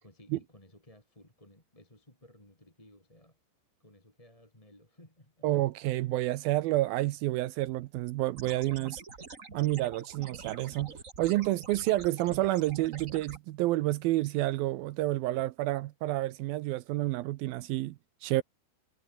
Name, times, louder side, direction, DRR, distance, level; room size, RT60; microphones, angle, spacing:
voice 1, 0.0-3.4 3.8-5.5, left 1 dB, 10° left, 4.0 m, -58 dB
voice 2, 5.4-9.0 9.5-18.4, right 17 dB, 80° right, 2.2 m, -29 dB
sound 1, 8.4-13.4, right 4 dB, 25° right, 1.8 m, -47 dB
omnidirectional pair, 5.0 m